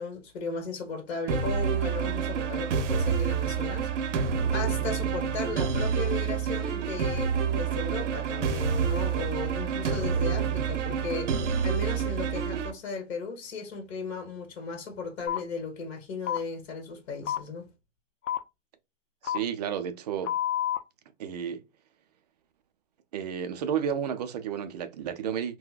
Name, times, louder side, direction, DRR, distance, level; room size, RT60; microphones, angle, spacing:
voice 1, 0.0-17.7, left 4 dB, 60° left, 1.4 m, -36 dB
sound 1, 1.3-12.7, right 7 dB, 70° right, 0.7 m, -28 dB
sound 2, 15.3-15.4 16.3-16.4 17.3-17.4 18.3-18.4 19.2-19.4 20.2-20.8, left 11 dB, 80° left, 0.7 m, -28 dB
voice 2, 19.2-20.4 21.2-21.6 23.1-25.6, right 8 dB, 35° right, 0.4 m, -32 dB
3.8 x 2.2 x 2.3 m
hypercardioid pair, 135°, 37 cm